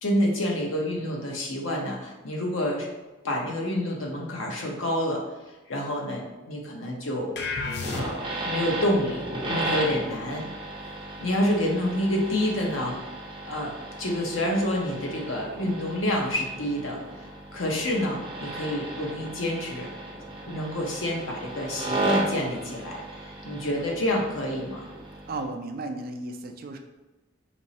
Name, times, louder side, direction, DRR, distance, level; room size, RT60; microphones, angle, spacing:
voice 1, 0.0-2.9 3.2-5.2 5.7-7.3 7.9-10.4 11.2-13.0 13.4-13.7 14.0-17.0 17.5-19.9 20.5-23.0 23.4-24.9, left 1 dB, 85° left, -1 dB, 0.9 m, -28 dB
sound 1, 7.4-8.5, left 3 dB, 55° left, 0.4 m, -32 dB
sound 2, 7.8-25.4, right 2 dB, 25° right, 0.8 m, -35 dB
voice 2, 25.3-26.8, right 2 dB, 50° right, 5 dB, 0.4 m, -34 dB
4.5 x 3.0 x 2.8 m, 1.1 s
head